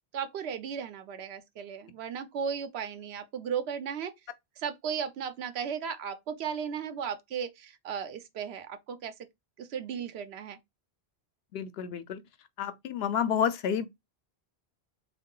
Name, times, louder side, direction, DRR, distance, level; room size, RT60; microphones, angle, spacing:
voice 1, 0.1-4.1 4.6-9.1 9.6-10.6, right 7 dB, 90° right, 0.9 m, -35 dB
voice 2, 11.5-12.2 12.6-13.9, left 8 dB, 80° left, 0.8 m, -29 dB
3.5 x 2.5 x 3.7 m
omnidirectional pair, 1.0 m